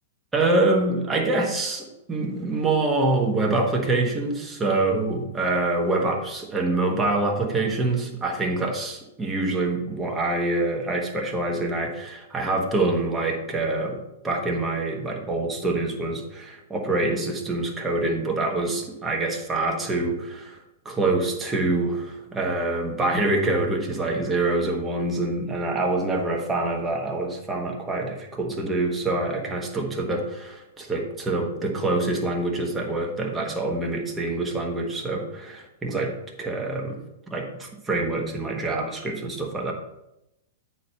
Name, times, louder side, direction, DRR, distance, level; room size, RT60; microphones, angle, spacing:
voice 1, 0.3-20.6 20.8-37.0 37.3-39.7, right 2 dB, 15° right, 0 dB, 1.4 m, -25 dB
9.2 x 4.5 x 4.4 m, 0.89 s
figure-of-eight pair, 105°, 0 cm